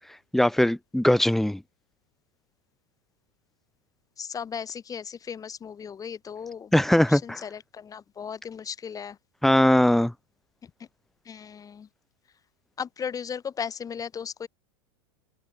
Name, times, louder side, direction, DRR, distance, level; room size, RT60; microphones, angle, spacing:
voice 1, 0.3-1.6 6.7-7.4 9.4-10.1, left 1 dB, ahead, 0.4 m, -20 dB
voice 2, 4.2-9.2 10.6-10.7 11.2-11.9 12.8-14.5, left 7 dB, 25° left, 4.7 m, -36 dB
hypercardioid pair, 105°, 14 cm